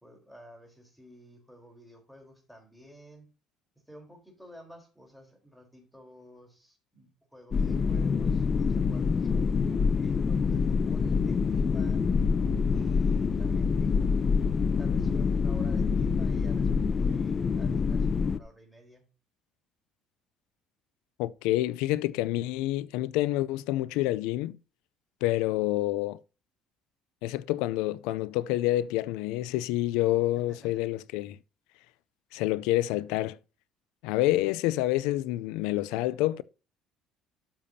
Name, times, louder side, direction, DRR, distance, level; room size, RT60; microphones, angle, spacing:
voice 1, 0.0-3.3 3.9-9.5 10.0-12.0 12.7-14.4 14.8-19.0 30.5-30.9, equal, ahead, 3.9 m, -52 dB
sound 1, 7.5-18.4, left 5 dB, 35° left, 0.6 m, -26 dB
voice 2, 21.2-24.6 25.2-26.2 27.2-31.4 32.3-33.4 34.0-36.4, left 16 dB, 90° left, 0.4 m, -28 dB
12.5 x 7.0 x 2.8 m
cardioid pair, 110°, 0 cm